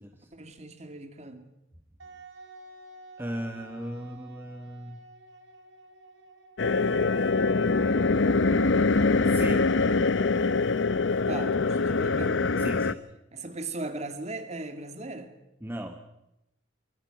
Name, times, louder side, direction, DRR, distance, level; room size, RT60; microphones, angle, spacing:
voice 1, 0.3-1.5 11.0-12.4 13.3-15.3, right 2 dB, 35° right, 8 dB, 2.3 m, -38 dB
Wind instrument woodwind instrument, 2.0-7.6, right 2 dB, 75° right, 3.4 m, -51 dB
voice 2, 3.2-5.0 9.2-9.7 12.6-13.0 15.6-16.0, equal, 10° right, 5 dB, 1.2 m, -37 dB
sound 1, 6.6-12.9, left 3 dB, 75° left, 0.7 m, -24 dB
26.5 x 22.0 x 6.0 m, 0.88 s
head